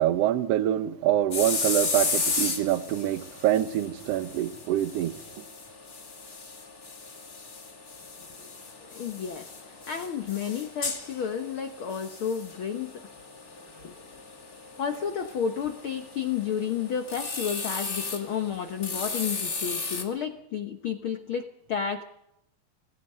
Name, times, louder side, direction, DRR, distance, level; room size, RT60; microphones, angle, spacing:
voice 1, 0.0-5.4, right 12 dB, 80° right, 1.4 m, -25 dB
sound 1, 1.3-20.0, left 4 dB, 30° left, 2.6 m, -35 dB
voice 2, 8.8-13.3 13.8-13.9 14.8-22.0, left 7 dB, 80° left, 1.1 m, -32 dB
27.0 x 19.5 x 5.5 m
omnidirectional pair, 4.0 m